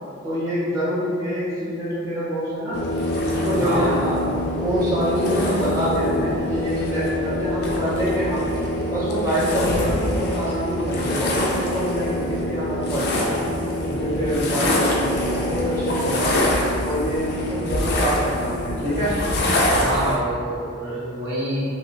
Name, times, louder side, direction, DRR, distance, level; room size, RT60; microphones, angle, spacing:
voice 1, 0.2-2.8 3.2-8.5 8.9-13.2 13.9-16.4 16.8-19.1, equal, 15° right, -11 dB, 0.4 m, -25 dB
sound 1, 2.7-20.2, left 1 dB, 55° left, 0.3 m, -24 dB
voice 2, 3.5-4.0 19.8-21.7, right 1 dB, 60° right, -9 dB, 0.8 m, -26 dB
2.6 x 2.0 x 2.8 m, 2.3 s
head